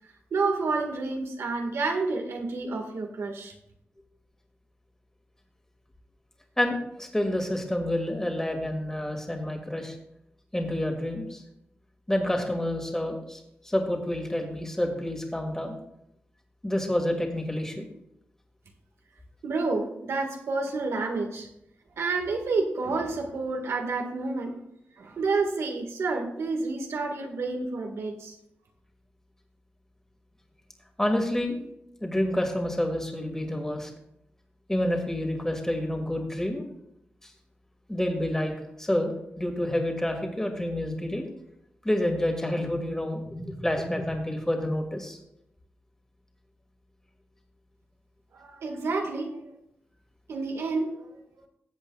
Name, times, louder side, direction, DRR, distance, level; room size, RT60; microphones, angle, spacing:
voice 1, 0.3-3.5 19.4-21.5 22.0-24.6 25.0-28.4 48.3-49.5 50.3-51.2, right 3 dB, 90° right, 3 dB, 1.7 m, -29 dB
voice 2, 6.6-9.9 10.5-11.4 12.1-15.8 16.6-17.9 31.0-31.6 32.0-33.9 34.7-36.7 37.2-37.3 37.9-38.5 38.8-41.2 41.8-45.2, left 1 dB, 10° left, 2 dB, 2.1 m, -28 dB
18.0 x 8.1 x 2.4 m, 0.78 s
cardioid pair, 85°, 4 cm